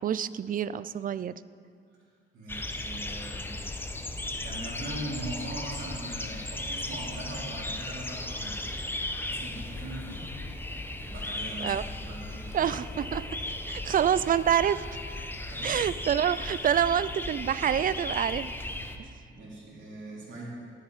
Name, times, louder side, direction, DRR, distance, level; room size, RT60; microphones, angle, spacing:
voice 1, 0.0-1.3 11.6-11.8 12.5-14.8 15.6-18.5 19.0-19.1, right 9 dB, 45° right, 17 dB, 0.4 m, -27 dB
voice 2, 2.3-3.9 4.4-10.2 11.0-12.7 15.5-15.8 19.3-20.5, right 1 dB, 75° right, -6 dB, 4.1 m, -41 dB
sound 1, 2.5-19.0, left 2 dB, 10° left, 0.9 m, -36 dB
15.0 x 12.5 x 4.1 m, 2.2 s
cardioid pair, 90°, 20 cm